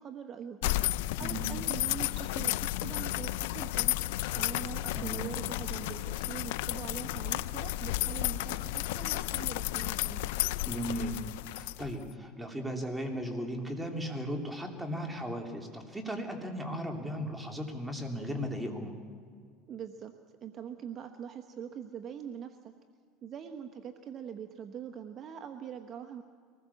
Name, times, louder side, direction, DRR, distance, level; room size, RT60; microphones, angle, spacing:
voice 1, 0.0-4.0 4.3-10.3 19.7-20.1 20.4-22.7 23.2-26.2, right 8 dB, 40° right, 6 dB, 1.2 m, -43 dB
sound 1, 0.6-12.1, left 16 dB, 85° left, 0.5 m, -32 dB
voice 2, 4.9-5.3 10.7-11.1 11.5-18.9, equal, 5° right, 2 dB, 3.3 m, -36 dB
24.5 x 20.0 x 7.1 m, 2.1 s
supercardioid pair, 125°, 0 cm